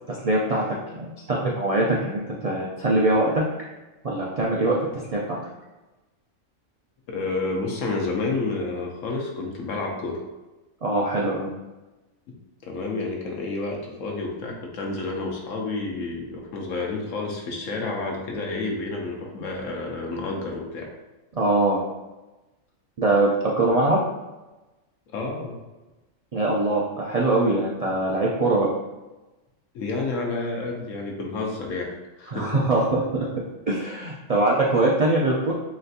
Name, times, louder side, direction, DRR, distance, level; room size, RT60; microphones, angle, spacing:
voice 1, 0.1-0.6 0.9-3.4 4.0-5.4 10.8-11.5 21.4-21.8 23.0-24.0 26.3-28.7 32.3-33.3 33.7-35.5, right 2 dB, 75° right, -4 dB, 0.3 m, -22 dB
voice 2, 7.1-10.2 12.6-20.9 25.1-25.6 29.7-31.9 32.2-32.6, left 3 dB, 70° left, 0 dB, 1.1 m, -30 dB
4.1 x 3.3 x 2.7 m, 1.1 s
omnidirectional pair, 1.4 m